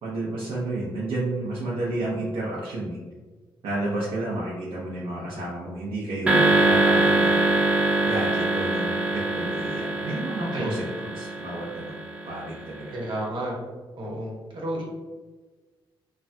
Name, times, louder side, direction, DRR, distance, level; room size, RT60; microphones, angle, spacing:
voice 1, 0.0-3.0 3.6-7.5 8.0-12.0 12.2-12.9, right 2 dB, 85° right, -6 dB, 0.6 m, -31 dB
sound 1, 6.3-12.6, right 2 dB, 15° right, 0.5 m, -23 dB
voice 2, 12.9-13.5 14.0-14.8, right 1 dB, 60° right, -3 dB, 1.0 m, -31 dB
3.1 x 2.2 x 2.6 m, 1.3 s
cardioid pair, 105°, 9 cm